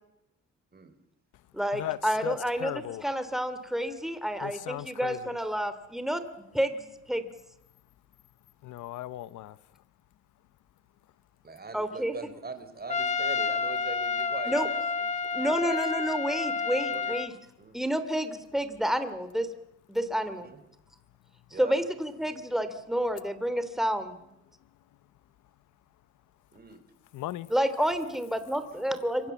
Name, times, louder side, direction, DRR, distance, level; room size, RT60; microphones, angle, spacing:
voice 1, 1.5-6.2 6.5-7.3 11.7-12.2 14.5-14.7 15.3-17.3 17.7-19.5 19.9-20.5 21.6-24.2 27.5-29.3, equal, ahead, 2.9 m, -29 dB
voice 2, 2.2-3.0 4.4-5.4 8.6-9.6 27.1-27.5, left 14 dB, 80° left, 0.9 m, -37 dB
voice 3, 11.4-15.1 15.4-15.8 16.9-17.2 17.6-17.8 20.4-20.6 21.5-21.8 26.5-26.8, right 4 dB, 30° right, 3.9 m, -42 dB
Trumpet, 12.9-17.3, left 5 dB, 20° left, 1.6 m, -30 dB
26.5 x 24.0 x 7.3 m
cardioid pair, 90°, 30 cm